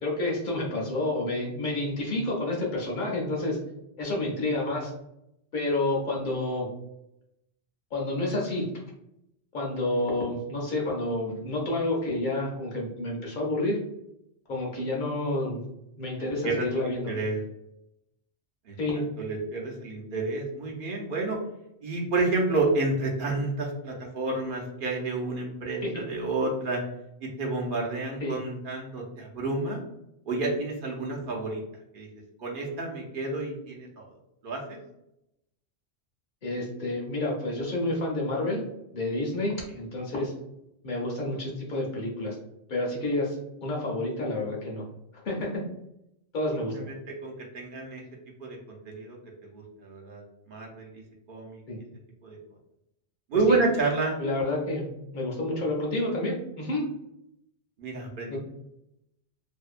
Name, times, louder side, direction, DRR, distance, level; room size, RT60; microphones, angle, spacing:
voice 1, 0.0-3.6 4.0-4.9 5.5-6.7 7.9-8.7 9.5-13.8 14.5-15.6 16.0-17.1 18.8-19.0 25.8-26.0 28.2-28.4 36.4-38.6 38.9-40.3 40.8-42.4 42.7-43.4 43.6-44.9 45.1-45.6 46.3-46.7 51.7-51.8 53.5-53.6 54.2-54.9 55.1-56.8 58.3-58.4, left 2 dB, 50° left, -2 dB, 0.8 m, -29 dB
voice 2, 16.2-16.7 17.0-17.4 18.7-18.8 19.2-21.4 21.8-26.8 27.2-29.8 30.3-31.6 31.9-32.1 32.4-34.1 34.4-34.8 46.9-47.0 47.2-48.0 48.4-49.2 49.5-50.9 51.3-51.6 52.2-52.4 53.3-54.1 57.8-58.4, right 3 dB, 60° right, -1 dB, 0.7 m, -29 dB
2.7 x 2.1 x 2.4 m, 0.82 s
omnidirectional pair, 1.1 m